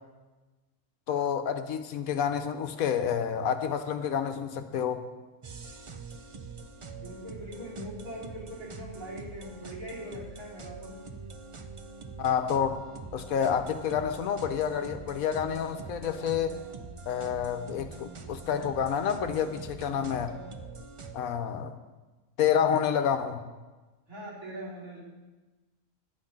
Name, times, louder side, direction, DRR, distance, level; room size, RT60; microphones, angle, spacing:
voice 1, 1.1-5.0 12.2-12.8 13.1-16.5 17.1-20.3 21.1-21.7 22.4-23.4, left 8 dB, 75° left, 8 dB, 1.2 m, -29 dB
sound 1, 5.4-21.2, right 4 dB, 50° right, 0.3 m, -44 dB
voice 2, 6.9-11.0 24.1-25.0, equal, 70° right, -6 dB, 4.8 m, -41 dB
11.0 x 5.9 x 8.8 m, 1.2 s
omnidirectional pair, 1.5 m